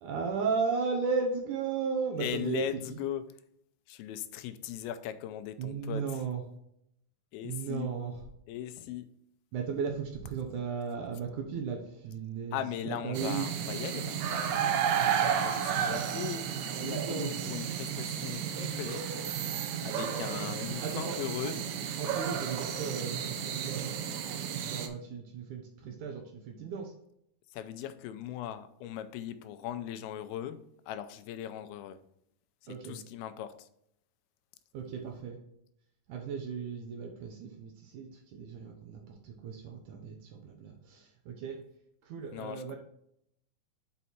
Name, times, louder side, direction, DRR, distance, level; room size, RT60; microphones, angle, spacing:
voice 1, 0.0-2.6 5.6-6.4 7.4-8.1 9.5-12.6 12.8-13.5 16.7-17.3 20.1-20.3 20.8-21.2 22.0-24.0 24.6-26.9 32.7-33.0 34.7-35.4 36.1-41.6 42.1-42.8, right 5 dB, 70° right, 2.1 m, -35 dB
voice 2, 2.2-3.4 3.9-6.2 7.3-8.0 8.5-9.1 12.5-14.3 14.6-19.1 19.8-21.7 27.5-32.0 32.6-33.7 42.3-42.8, left 11 dB, 85° left, 2.5 m, -39 dB
sound 1, 13.1-24.9, right 8 dB, 90° right, 1.6 m, -32 dB
6.3 x 5.4 x 4.3 m
omnidirectional pair, 4.3 m